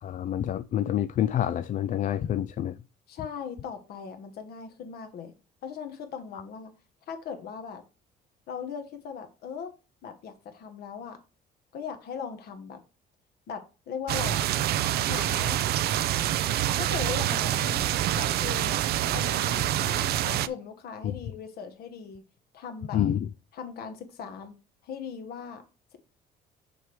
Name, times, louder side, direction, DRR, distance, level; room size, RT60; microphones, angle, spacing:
voice 1, 0.0-2.8 6.3-6.4 21.0-21.2 22.9-23.3, left 11 dB, 50° left, 0.4 m, -27 dB
voice 2, 3.1-5.3 5.6-6.7 7.1-7.8 8.5-9.7 10.0-11.2 11.7-12.8 13.5-14.5 15.1-15.6 16.7-18.8 19.1-22.2 22.5-23.0 23.5-24.5 24.8-25.6, left 6 dB, 70° left, 1.7 m, -39 dB
sound 1, 14.1-20.5, right 12 dB, 70° right, 0.5 m, -26 dB
6.4 x 4.7 x 4.8 m
cardioid pair, 110°, 17 cm